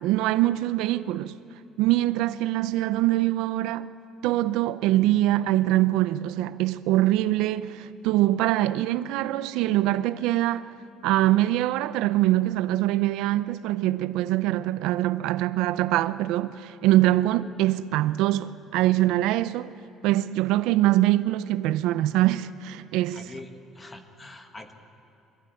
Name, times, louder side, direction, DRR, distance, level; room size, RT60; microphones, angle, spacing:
voice 1, 0.0-1.4 1.8-3.9 4.2-10.7 11.0-19.7 20.0-23.3, right 15 dB, 85° right, 0.5 m, -23 dB
voice 2, 23.1-24.7, left 2 dB, 15° left, 1.4 m, -44 dB
22.0 x 14.5 x 9.3 m
cardioid pair, 160°, 0 cm